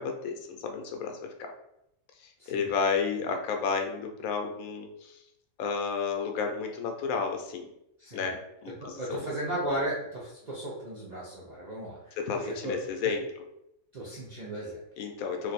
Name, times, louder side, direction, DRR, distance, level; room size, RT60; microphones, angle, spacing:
voice 1, 0.0-1.5 2.2-5.2 5.6-7.7 8.1-9.3 12.2-13.2 15.0-15.5, left 5 dB, 80° left, 4 dB, 1.0 m, -32 dB
voice 2, 2.4-2.7 8.0-8.3 8.8-13.1 13.9-14.8, right 1 dB, 55° right, -6 dB, 0.4 m, -36 dB
2.6 x 2.5 x 4.0 m, 0.81 s
omnidirectional pair, 1.5 m